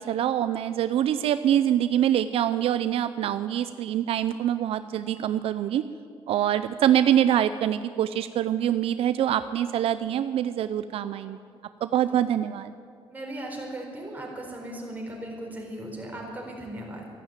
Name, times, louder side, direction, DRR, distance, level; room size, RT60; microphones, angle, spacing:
voice 1, 0.1-5.8 6.3-11.4 11.8-12.7, right 11 dB, 70° right, 12 dB, 0.5 m, -24 dB
voice 2, 13.1-17.0, right 1 dB, 15° right, -1 dB, 4.3 m, -37 dB
13.5 x 11.5 x 9.0 m, 2.3 s
cardioid pair, 120°, 10 cm